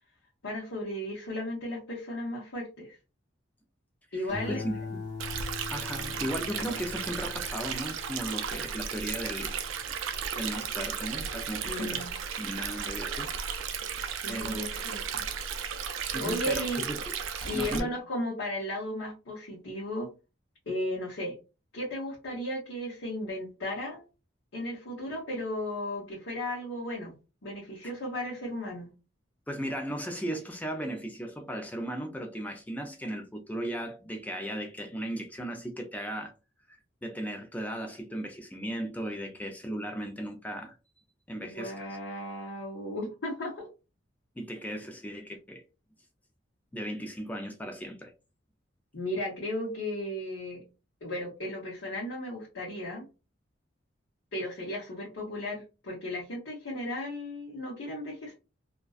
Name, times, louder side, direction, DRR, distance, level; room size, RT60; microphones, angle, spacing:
voice 1, 0.4-3.0 4.1-4.6 11.6-12.1 14.0-15.0 16.2-16.8 17.4-20.1 20.7-21.3 21.7-24.0 24.5-27.1 27.4-28.9 41.4-43.7 48.9-50.6 51.0-53.1 54.3-58.3, left 1 dB, 85° left, 0.9 m, -35 dB
voice 2, 4.1-5.0 5.7-9.5 10.4-12.1 12.4-13.4 14.3-14.7 15.1-15.3 16.1-17.9 29.5-36.3 36.7-40.8 41.3-41.9 44.4-45.6 46.7-48.1, equal, 10° left, 0.4 m, -36 dB
sound 1, 4.3-10.8 11.3-11.8, left 4 dB, 60° left, 0.8 m, -42 dB
Stream, 5.2-17.8, right 7 dB, 85° right, 0.4 m, -35 dB
2.4 x 2.2 x 2.3 m
head